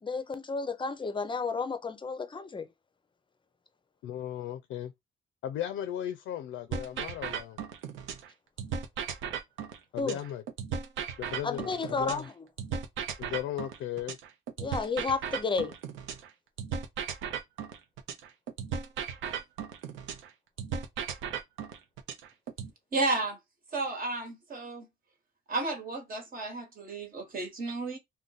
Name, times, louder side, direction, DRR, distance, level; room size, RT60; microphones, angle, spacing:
voice 1, 0.0-2.7 10.0-10.2 11.4-12.3 14.6-15.7, left 4 dB, 25° left, 0.5 m, -32 dB
voice 2, 4.0-4.9 5.4-7.6 9.9-10.4 11.2-12.3 13.2-14.2, left 10 dB, 85° left, 0.4 m, -36 dB
sound 1, 6.7-8.3 8.6-12.3 12.6-16.3 16.6-20.3 20.6-22.7, right 7 dB, 90° right, 0.6 m, -36 dB
voice 3, 22.9-23.4 23.7-24.9 25.5-28.0, right 3 dB, 45° right, 1.2 m, -32 dB
2.5 x 2.2 x 3.8 m
cardioid pair, 90°, 20 cm